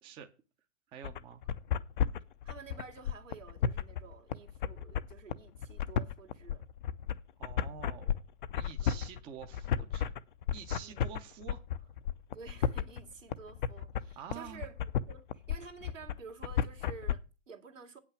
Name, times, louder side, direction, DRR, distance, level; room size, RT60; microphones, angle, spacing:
voice 1, 0.9-1.4 7.4-8.2 8.5-10.1 10.5-11.9 14.2-14.6, right 7 dB, 15° right, 0.6 m, -48 dB
sound 1, 1.0-17.1, left 9 dB, 40° left, 0.6 m, -33 dB
voice 2, 2.4-6.7 8.8-9.1 10.8-11.1 12.3-18.0, right 5 dB, 80° right, 2.3 m, -51 dB
8.6 x 5.9 x 7.0 m
figure-of-eight pair, 120°, 38 cm